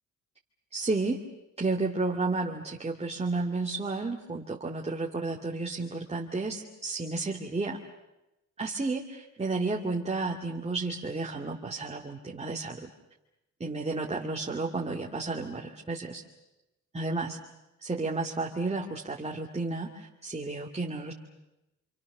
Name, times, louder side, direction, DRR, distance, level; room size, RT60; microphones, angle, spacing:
voice 1, 0.7-1.2 1.6-7.8 8.6-12.9 13.6-16.2 16.9-17.4 17.8-21.1, right 3 dB, 20° right, -1 dB, 2.5 m, -32 dB
28.0 x 27.0 x 6.8 m, 0.95 s
cardioid pair, 90°, 30 cm